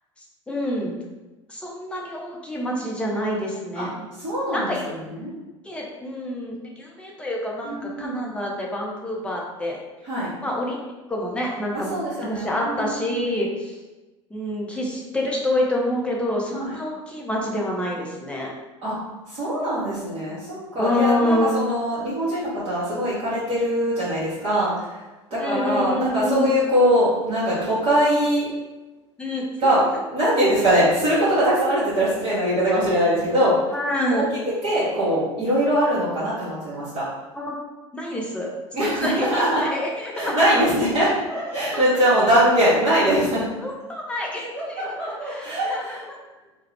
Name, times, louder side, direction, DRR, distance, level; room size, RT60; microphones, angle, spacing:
voice 1, 0.2-1.0 1.5-4.1 4.5-5.0 5.6-9.8 10.4-10.8 11.1-13.8 14.3-18.5 20.8-21.6 25.4-26.6 29.2-29.4 33.7-34.3 37.4-37.6 37.9-38.5 38.8-40.5 41.7-41.8 43.6-46.2, left 1 dB, 5° left, -2 dB, 0.5 m, -27 dB
voice 2, 4.2-5.3 7.7-8.3 10.0-10.3 11.9-13.2 16.5-16.7 18.8-19.0 19.3-25.0 25.3-28.5 29.6-29.8 30.1-33.7 34.1-34.2 34.6-37.1 38.7-39.6 40.1-43.4 44.5-46.0, equal, 40° right, -11 dB, 1.0 m, -22 dB
2.4 x 2.0 x 3.2 m, 1.1 s
figure-of-eight pair, 70°, 16 cm